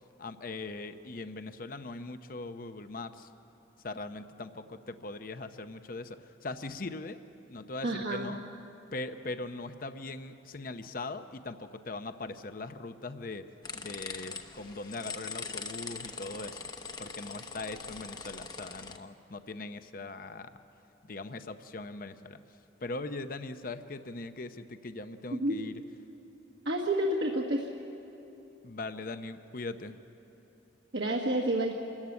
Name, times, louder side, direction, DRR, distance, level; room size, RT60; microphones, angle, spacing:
voice 1, 0.2-3.3 3.8-7.2 7.5-8.4 8.9-16.6 17.0-20.5 21.0-22.4 22.8-25.7 28.6-30.0, left 2 dB, 50° left, 9 dB, 0.7 m, -40 dB
voice 2, 7.8-8.3 25.3-25.5 26.6-27.7 30.9-31.7, right 1 dB, 65° right, -1 dB, 1.5 m, -29 dB
sound 1, 13.6-19.0, left 4 dB, 25° left, 1.0 m, -42 dB
26.5 x 14.5 x 9.7 m, 3.0 s
head